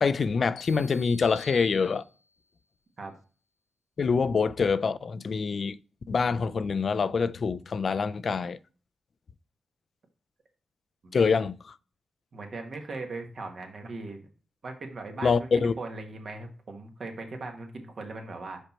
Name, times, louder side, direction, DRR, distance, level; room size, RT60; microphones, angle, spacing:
voice 1, 0.0-2.0 4.0-5.8 6.1-8.6 11.1-11.6 15.2-15.7, left 5 dB, 60° left, 0.3 m, -25 dB
sound 1, 0.6-2.5, left 5 dB, 90° left, 1.1 m, -50 dB
voice 2, 11.0-11.4 12.3-14.3 14.6-18.6, right 3 dB, 60° right, 1.5 m, -39 dB
5.1 x 4.4 x 4.3 m
cardioid pair, 50°, 0 cm